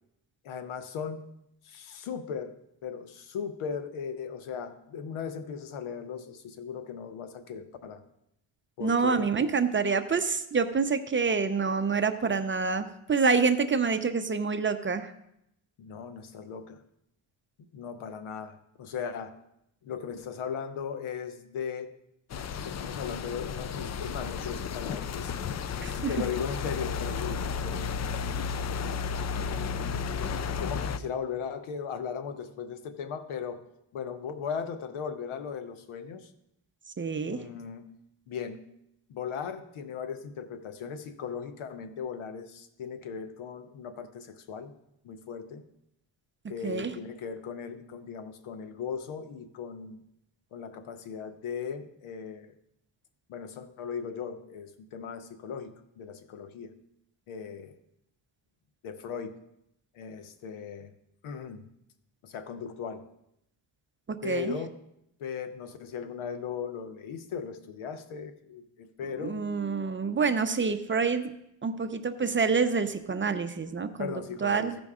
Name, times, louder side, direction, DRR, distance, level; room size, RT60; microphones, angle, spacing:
voice 1, 0.4-1.2 1.6-2.6 2.8-8.0 8.8-9.2 15.8-16.8 17.7-19.3 19.8-21.9 22.5-25.3 26.1-28.1 29.6-30.1 30.6-33.6 33.9-36.3 37.3-37.9 38.3-38.6 39.1-44.7 45.0-45.6 46.5-50.0 50.5-52.5 53.3-56.7 57.3-57.7 58.8-59.3 59.9-60.9 61.2-61.7 62.2-63.0 64.2-64.7 65.2-69.8 74.0-74.7, left 6 dB, 85° left, 10 dB, 0.9 m, -38 dB
voice 2, 8.8-15.1 25.8-26.1 37.0-37.4 46.6-46.9 64.1-64.5 69.2-71.3 71.6-74.8, right 5 dB, 25° right, 9 dB, 0.6 m, -27 dB
sound 1, 22.3-31.0, left 6 dB, 35° left, 0.4 m, -33 dB
15.0 x 5.2 x 3.6 m, 0.78 s
cardioid pair, 85°, 47 cm